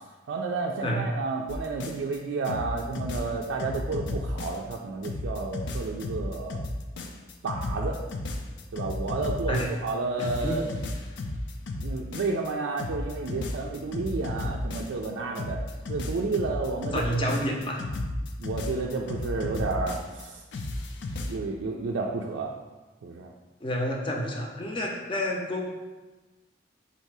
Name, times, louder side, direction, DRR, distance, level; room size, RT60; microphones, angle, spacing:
voice 1, 0.3-6.6 7.4-8.0 8.7-10.6 11.8-15.6 15.9-17.3 18.4-20.4 21.3-22.5 23.0-23.3, right 3 dB, 85° right, -1 dB, 0.4 m, -31 dB
sound 1, 1.5-2.2 2.4-4.8 5.0-9.9 10.2-12.5 12.8-15.1 15.4-20.2 20.5-21.4, left 2 dB, 70° left, 0.4 m, -34 dB
voice 2, 10.2-10.6 16.9-17.8 23.6-25.7, equal, 25° left, 0 dB, 0.6 m, -29 dB
4.1 x 2.7 x 4.6 m, 1.2 s
head